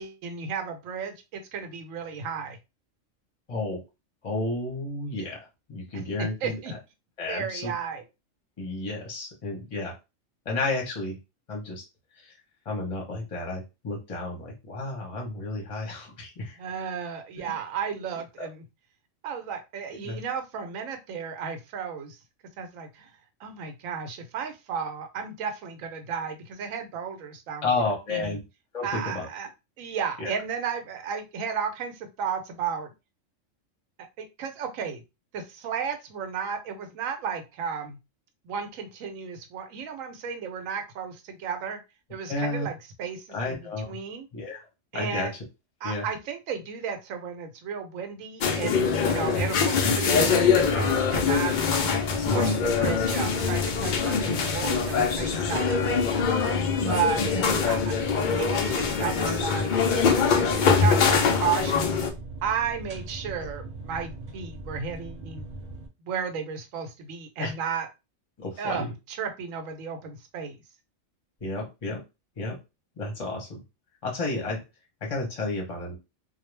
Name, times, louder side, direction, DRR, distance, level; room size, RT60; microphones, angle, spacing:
voice 1, 0.0-2.6 5.9-6.7 7.3-8.0 16.6-18.6 19.2-22.2 22.6-23.1 23.4-27.7 28.1-28.4 28.8-29.5 29.8-32.9 34.2-35.0 35.3-38.0 38.4-41.8 42.1-43.6 43.9-44.3 44.9-45.3 45.8-48.7 49.0-51.5 52.3-56.3 56.9-57.2 57.7-62.0 62.4-65.5 66.0-67.9 68.6-70.6, right 6 dB, 85° right, 6 dB, 1.0 m, -33 dB
voice 2, 3.5-3.8 4.2-6.6 7.2-7.7 8.6-10.0 10.4-11.2 11.5-11.8 12.2-12.3 12.6-16.6 18.4-18.5 20.0-20.2 27.6-28.4 28.7-29.3 30.2-30.3 42.3-42.7 43.3-44.0 44.3-44.6 44.9-45.3 45.8-46.1 49.8-50.2 52.2-52.6 54.2-54.3 56.8-57.4 67.4-67.5 68.4-68.9 71.4-72.0 72.4-72.6 73.0-73.6 74.0-74.6 75.0-76.0, left 2 dB, 35° left, 0 dB, 0.7 m, -31 dB
sound 1, 48.4-62.1, left 5 dB, 80° left, 0.4 m, -23 dB
sound 2, 50.4-65.9, right 2 dB, 60° right, 0.4 m, -40 dB
2.3 x 2.0 x 3.1 m, 0.26 s
omnidirectional pair, 1.3 m